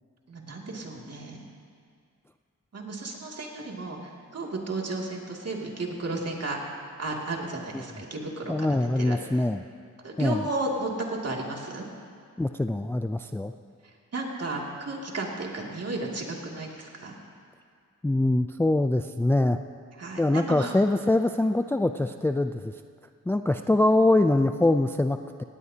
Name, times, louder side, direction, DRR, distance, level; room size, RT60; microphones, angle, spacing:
voice 1, 0.3-1.4 2.7-4.0 4.3-6.6 7.0-8.7 9.0-9.2 10.0-11.9 14.1-17.2 20.0-20.7, right 2 dB, 45° right, -1 dB, 2.6 m, -33 dB
voice 2, 8.5-9.6 10.2-10.4 12.4-13.5 18.0-19.6 20.2-22.7 23.3-25.4, left 2 dB, 5° left, 8 dB, 0.4 m, -23 dB
18.5 x 17.5 x 2.9 m, 2.2 s
cardioid pair, 70°, 33 cm